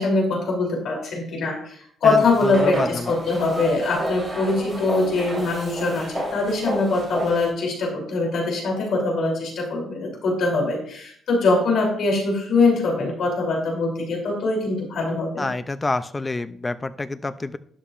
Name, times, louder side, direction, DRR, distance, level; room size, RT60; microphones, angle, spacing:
voice 1, 0.0-15.5, left 3 dB, 55° left, 0 dB, 3.2 m, -23 dB
voice 2, 2.0-3.1 15.4-17.6, left 3 dB, 15° left, 12 dB, 0.4 m, -28 dB
sound 1, 2.2-7.5, right 1 dB, 5° right, 3.6 m, -31 dB
12.5 x 10.5 x 2.5 m, 0.62 s
cardioid pair, 180°, 0 cm